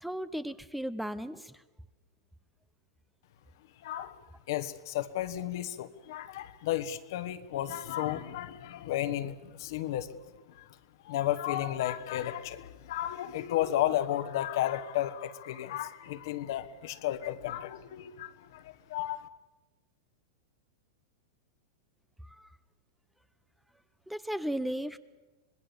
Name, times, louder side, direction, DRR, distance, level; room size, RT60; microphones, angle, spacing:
voice 1, 0.0-1.6 22.2-22.5 24.1-25.0, equal, ahead, 15 dB, 0.6 m, -35 dB
voice 2, 3.8-4.2 4.5-10.2 10.5-10.6 11.0-19.3, left 12 dB, 65° left, 11 dB, 1.3 m, -33 dB
26.0 x 20.0 x 7.2 m, 1.2 s
hypercardioid pair, 130°, 2 cm